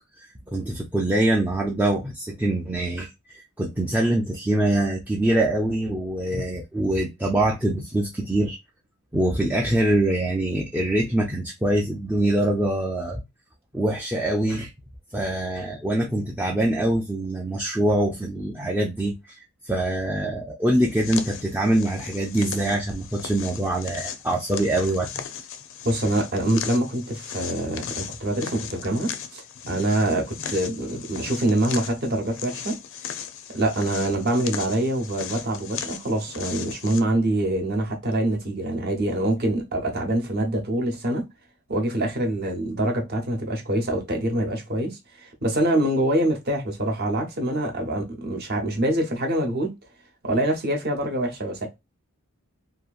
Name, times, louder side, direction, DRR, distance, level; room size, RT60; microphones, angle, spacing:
voice 1, 0.2-8.6 9.1-13.2 13.7-14.7 15.1-25.2, right 1 dB, 10° right, 0.3 m, -24 dB
sound 1, 20.9-37.0, left 8 dB, 60° left, 0.4 m, -37 dB
voice 2, 25.8-32.8 33.0-33.1 33.5-41.3 41.7-49.7 50.2-51.7, right 1 dB, 45° right, 0.8 m, -25 dB
2.8 x 2.5 x 2.3 m
head